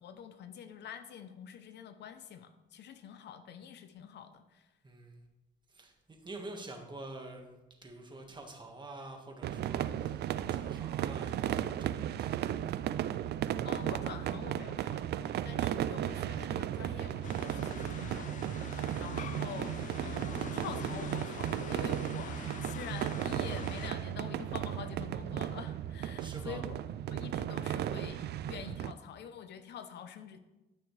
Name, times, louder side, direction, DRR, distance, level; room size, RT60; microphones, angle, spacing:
voice 1, 0.0-4.7 13.6-26.8 27.1-30.4, left 8 dB, 70° left, 9 dB, 0.8 m, -46 dB
voice 2, 4.8-5.2 5.7-7.5 7.8-12.8 26.2-26.6, right 2 dB, 25° right, 2 dB, 1.6 m, -47 dB
sound 1, 9.4-28.9, right 11 dB, 65° right, 0.4 m, -35 dB
sound 2, 17.2-23.9, left 9 dB, 45° left, 0.4 m, -45 dB
13.0 x 6.0 x 3.3 m, 1.0 s
cardioid pair, 115°, 19 cm